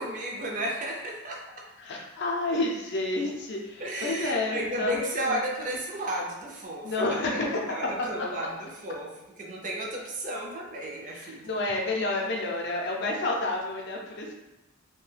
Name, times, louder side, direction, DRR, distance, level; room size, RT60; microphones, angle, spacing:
voice 1, 0.0-1.4 3.8-7.4 7.7-9.1 9.4-11.5, right 1 dB, 40° right, -1 dB, 0.5 m, -33 dB
voice 2, 1.8-5.4 6.8-8.3 11.0-14.3, left 2 dB, 55° left, -1 dB, 0.5 m, -30 dB
2.7 x 2.1 x 3.2 m, 0.97 s
head